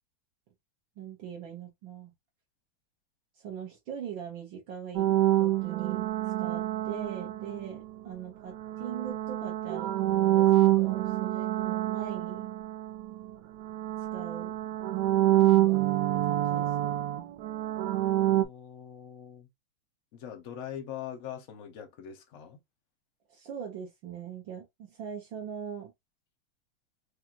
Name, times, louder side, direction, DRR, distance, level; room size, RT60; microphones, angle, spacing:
voice 1, 1.0-2.1 3.4-6.1 6.4-12.5 14.1-14.6 15.4-15.9 16.2-17.0 23.3-25.9, right 8 dB, 70° right, 1.7 m, -41 dB
sound 1, 4.9-7.8 8.5-13.3 13.6-18.4, right 14 dB, 90° right, 0.8 m, -27 dB
voice 2, 18.2-19.5 20.1-22.6, left 9 dB, 80° left, 0.6 m, -42 dB
4.8 x 2.4 x 2.9 m
omnidirectional pair, 2.3 m